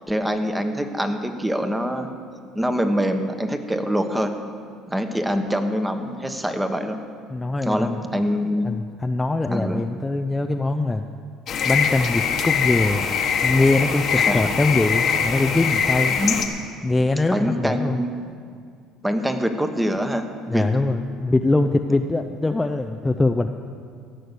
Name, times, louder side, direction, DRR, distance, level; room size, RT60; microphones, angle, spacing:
voice 1, 0.1-2.1 2.5-4.4 4.9-7.0 7.6-8.7 9.5-9.8 14.2-14.4 16.2-16.4 17.3-18.3 19.0-20.6, equal, 10° right, 7 dB, 1.2 m, -24 dB
voice 2, 7.3-8.2 8.6-11.1 11.6-13.1 13.4-16.1 16.8-18.0 20.5-23.5, left 2 dB, 15° left, 5 dB, 0.5 m, -22 dB
sound 1, 11.5-16.5, left 6 dB, 50° left, 1.3 m, -22 dB
15.5 x 6.4 x 8.3 m, 2.1 s
supercardioid pair, 80°, 0 cm